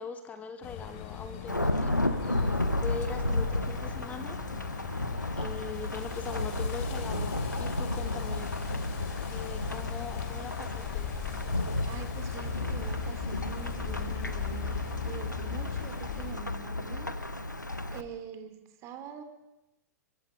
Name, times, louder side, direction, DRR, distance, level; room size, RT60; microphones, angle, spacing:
voice 1, 0.0-4.4 5.4-8.5 9.3-11.1, left 5 dB, 15° left, 8 dB, 2.2 m, -41 dB
sound 1, 0.6-16.3, left 8 dB, 40° left, 3.5 m, -39 dB
Thunderstorm / Rain, 1.5-18.0, left 2 dB, 85° left, 1.5 m, -33 dB
voice 2, 11.8-17.1 17.9-19.2, right 6 dB, 30° right, 8 dB, 3.2 m, -44 dB
24.5 x 23.0 x 5.3 m, 0.97 s
figure-of-eight pair, 105°, 10 cm